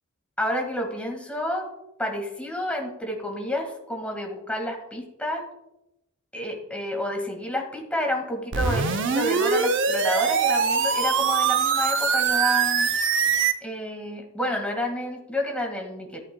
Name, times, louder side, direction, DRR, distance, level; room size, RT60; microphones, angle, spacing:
voice 1, 0.4-1.7 2.0-5.4 6.3-12.9 13.6-16.2, left 1 dB, 5° left, 1 dB, 1.7 m, -29 dB
sound 1, 8.5-13.5, right 6 dB, 65° right, 0.7 m, -23 dB
14.0 x 8.4 x 2.2 m, 0.90 s
head